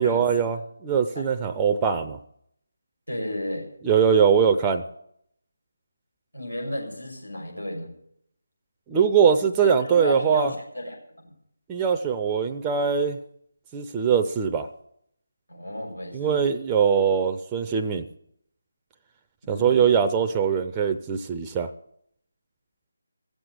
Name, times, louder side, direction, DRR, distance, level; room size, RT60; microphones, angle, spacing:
voice 1, 0.0-2.2 3.8-4.8 8.9-10.5 11.7-13.2 13.7-14.7 16.1-18.0 19.5-21.7, right 7 dB, 15° right, 5 dB, 0.6 m, -22 dB
voice 2, 3.1-3.7 6.3-7.9 9.8-11.3 15.5-16.4 19.4-19.8, left 1 dB, 90° left, 0 dB, 6.3 m, -33 dB
16.0 x 7.8 x 8.3 m, 0.71 s
figure-of-eight pair, 155°, 0 cm